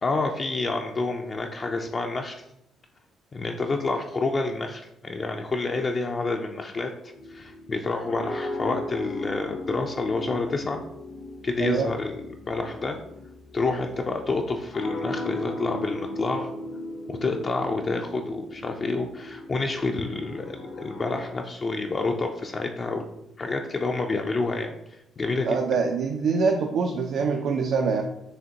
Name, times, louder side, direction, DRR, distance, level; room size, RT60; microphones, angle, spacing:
voice 1, 0.0-2.4 3.3-6.9 7.3-10.8 11.4-13.0 13.5-16.5 17.1-23.1 23.4-25.6, left 3 dB, 35° left, 3 dB, 0.3 m, -28 dB
sound 1, 7.1-21.3, left 1 dB, 80° left, 0.7 m, -37 dB
voice 2, 11.6-11.9 25.4-28.0, right 5 dB, 70° right, 3 dB, 0.3 m, -24 dB
4.9 x 2.9 x 2.8 m, 0.82 s
cardioid pair, 90°, 0 cm